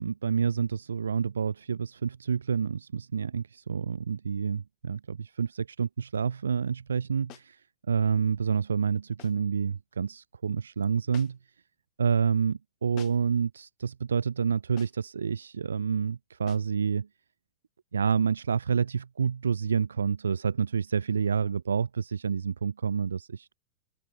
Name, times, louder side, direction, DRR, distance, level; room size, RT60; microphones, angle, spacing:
voice 1, 0.0-11.4 12.0-17.1 17.9-23.5, right 6 dB, 70° right, 0.5 m, -28 dB
sound 1, 7.3-7.6 9.2-9.5 11.1-11.6 13.0-13.4 14.8-15.1 16.5-16.8, left 23 dB, 40° left, 3.8 m, -50 dB
open air
figure-of-eight pair, 90°, 0 cm